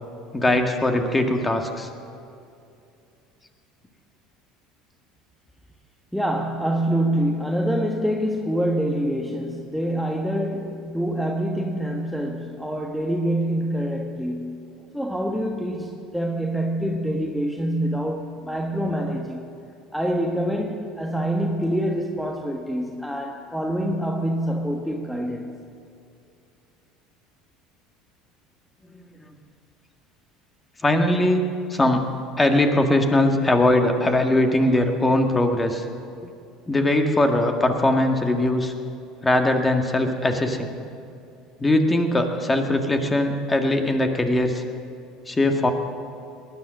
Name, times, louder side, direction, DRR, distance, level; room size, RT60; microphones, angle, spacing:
voice 1, 0.3-1.9 28.9-29.1 30.8-32.1 32.4-35.9 36.7-38.7 39.2-40.7 41.6-44.6 45.3-45.7, left 1 dB, 20° left, 4 dB, 1.8 m, -21 dB
voice 2, 6.1-14.6 14.9-19.5 19.9-25.6, equal, ahead, 1 dB, 1.3 m, -26 dB
19.0 x 10.5 x 6.5 m, 2.6 s
hypercardioid pair, 75°, 0 cm